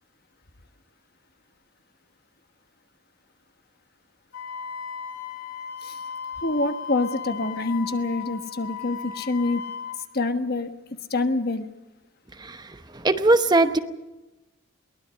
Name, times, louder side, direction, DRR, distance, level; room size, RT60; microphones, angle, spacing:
Wind instrument woodwind instrument, 4.3-10.0, left 6 dB, 85° left, 3.2 m, -36 dB
voice 1, 6.4-9.6 10.1-10.7 11.1-11.7, left 2 dB, 45° left, 8 dB, 1.4 m, -26 dB
voice 2, 12.3-13.8, right 2 dB, 20° right, 9 dB, 0.9 m, -21 dB
22.5 x 19.5 x 6.4 m, 1.0 s
head